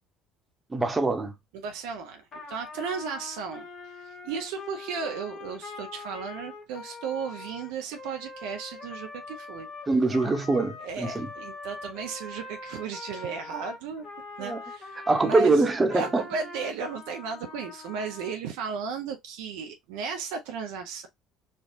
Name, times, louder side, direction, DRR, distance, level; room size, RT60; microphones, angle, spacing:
voice 1, 0.7-1.3 9.9-11.3 14.4-14.6 15.1-16.2, right 3 dB, 25° right, 1.0 m, -23 dB
voice 2, 1.5-3.7 4.0-9.7 10.8-14.1 14.4-15.7 15.9-21.1, right 5 dB, 70° right, 0.6 m, -35 dB
Trumpet, 2.3-15.4 15.9-18.4, left 3 dB, 45° left, 1.3 m, -43 dB
4.4 x 2.3 x 2.5 m
hypercardioid pair, 60°, 0 cm